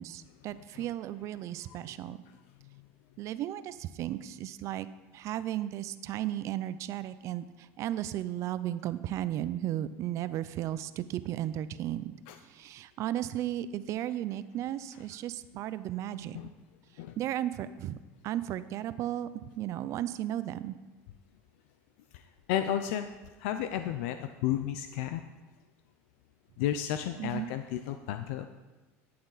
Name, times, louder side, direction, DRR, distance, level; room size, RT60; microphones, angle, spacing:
voice 1, 0.0-2.2 3.2-4.9 5.1-7.5 7.8-12.2 12.5-16.4 17.2-18.0 18.2-20.8 27.2-27.5, right 12 dB, 45° right, 14 dB, 0.5 m, -35 dB
voice 2, 0.5-0.9 1.7-2.2 12.3-12.4 16.3-16.5 17.0-17.2 22.5-23.1 23.4-25.2 26.6-28.4, left 11 dB, 75° left, 9 dB, 0.5 m, -33 dB
11.5 x 8.7 x 4.0 m, 1.2 s
supercardioid pair, 130°, 7 cm